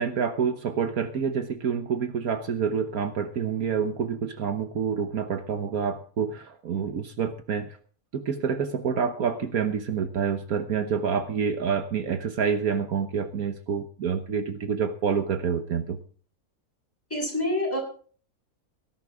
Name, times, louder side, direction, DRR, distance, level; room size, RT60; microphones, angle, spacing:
voice 1, 0.0-7.8 8.1-16.0, right 6 dB, 70° right, 8 dB, 1.5 m, -27 dB
voice 2, 17.1-17.8, left 1 dB, 10° left, 0 dB, 6.4 m, -26 dB
18.5 x 10.5 x 3.7 m, 0.43 s
omnidirectional pair, 1.6 m